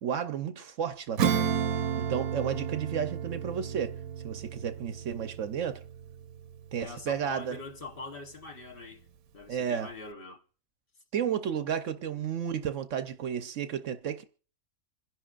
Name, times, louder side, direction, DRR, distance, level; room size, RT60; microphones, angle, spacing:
voice 1, 0.0-1.5 2.0-4.0 4.2-5.8 6.7-7.6 9.5-9.9 11.1-14.2, right 8 dB, 65° right, 1.0 m, -32 dB
Acoustic guitar / Strum, 1.2-7.2, right 8 dB, 80° right, 1.3 m, -32 dB
voice 2, 6.8-9.0 9.3-10.4 12.1-12.2, left 3 dB, 45° left, 1.1 m, -43 dB
27.0 x 10.5 x 2.4 m
omnidirectional pair, 1.5 m